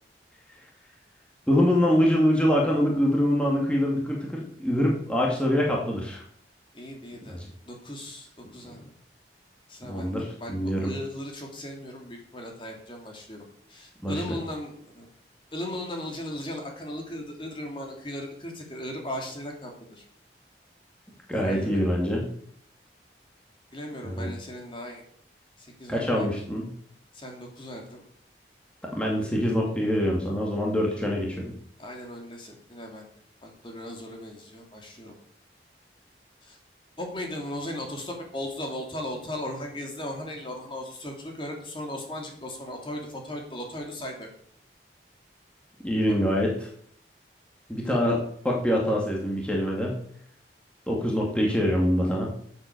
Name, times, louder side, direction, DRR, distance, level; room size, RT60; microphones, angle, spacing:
voice 1, 1.5-6.2 7.3-7.5 9.8-10.9 14.0-14.1 21.3-22.2 24.0-24.3 25.9-26.7 28.8-31.5 45.8-46.7 47.7-50.0 50.9-52.3, equal, 5° left, -2 dB, 2.3 m, -24 dB
voice 2, 6.7-8.9 9.7-15.1 15.5-20.0 21.3-21.8 23.7-25.0 25.6-26.3 27.1-28.0 31.8-33.1 33.4-35.1 36.4-36.6 37.0-44.3 47.8-48.0, left 1 dB, 30° left, 1 dB, 2.8 m, -37 dB
12.0 x 8.1 x 6.7 m, 0.63 s
head